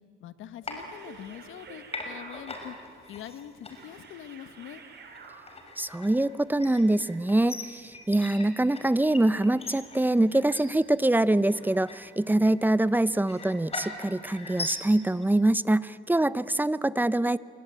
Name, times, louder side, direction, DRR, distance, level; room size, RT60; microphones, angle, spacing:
voice 1, 0.0-2.8 3.1-4.8, left 10 dB, 80° left, 13 dB, 1.4 m, -44 dB
sound 1, 0.6-1.6 1.9-15.3, left 2 dB, 30° left, 5.6 m, -41 dB
sound 2, 0.6-5.8, right 5 dB, 60° right, 5.0 m, -50 dB
voice 2, 5.8-17.4, right 1 dB, 10° right, 17 dB, 0.8 m, -24 dB
28.0 x 24.0 x 8.9 m, 2.5 s
cardioid pair, 90°, 20 cm